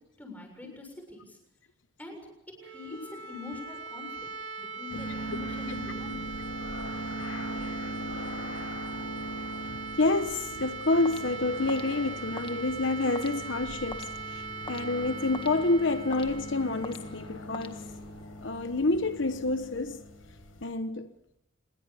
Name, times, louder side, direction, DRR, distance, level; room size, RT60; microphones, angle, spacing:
voice 1, 0.2-1.4 2.0-2.2 2.6-4.3 4.6-6.4, left 4 dB, 5° left, 6.9 m, -44 dB
sound 1, 2.5-18.3, right 4 dB, 65° right, 6.8 m, -41 dB
sound 2, 4.9-20.7, right 1 dB, 80° left, 6.9 m, -40 dB
voice 2, 9.6-17.9 18.4-20.0 20.6-21.1, left 2 dB, 60° left, 1.1 m, -28 dB
sound 3, 11.0-18.3, left 3 dB, 25° left, 1.6 m, -48 dB
27.0 x 22.0 x 7.0 m
head